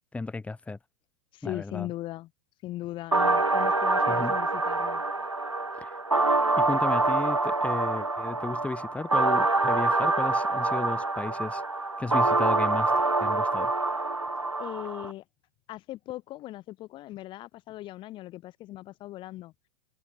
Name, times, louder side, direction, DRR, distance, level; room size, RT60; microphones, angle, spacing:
voice 1, 0.1-0.8 1.4-1.9 4.1-4.3 5.8-6.0 6.6-11.6 12.0-12.9 13.2-13.7, left 3 dB, 10° left, 2.7 m, -34 dB
voice 2, 1.3-2.3 2.6-5.0 14.6-15.2 15.7-19.5, left 16 dB, 30° left, 3.6 m, -39 dB
sound 1, 3.1-15.1, right 2 dB, 90° right, 0.7 m, -26 dB
figure-of-eight pair, 95°, 15 cm